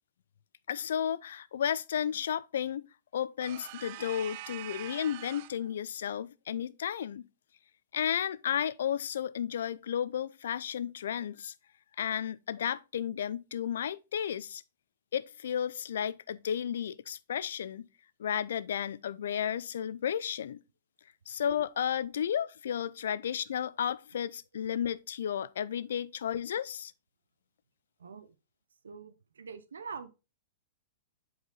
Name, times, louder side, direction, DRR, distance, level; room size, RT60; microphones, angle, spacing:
voice 1, 0.7-2.9 3.1-7.2 7.9-11.5 12.0-14.6 15.1-17.9 18.2-20.6 21.3-26.9, left 9 dB, 70° left, 0.5 m, -33 dB
sound 1, 3.4-5.7, right 15 dB, 50° right, 0.4 m, -44 dB
voice 2, 28.0-28.4 28.8-30.1, right 5 dB, 80° right, 0.7 m, -45 dB
7.9 x 4.7 x 3.9 m
hypercardioid pair, 110°, 0 cm